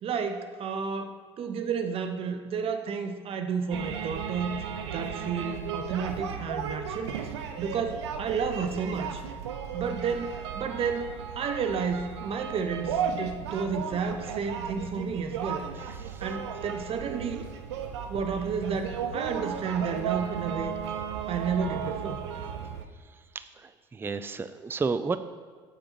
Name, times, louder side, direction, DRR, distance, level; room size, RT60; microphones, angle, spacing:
voice 1, 0.0-9.2 9.7-15.6 16.2-17.4 18.1-20.7 21.3-22.2, right 5 dB, 40° right, 6 dB, 1.0 m, -31 dB
sound 1, 3.7-22.8, right 7 dB, 70° right, 0.9 m, -35 dB
voice 2, 23.3-25.2, right 4 dB, 15° right, 12 dB, 0.4 m, -32 dB
14.5 x 8.9 x 3.0 m, 1.5 s
figure-of-eight pair, 65°, 15 cm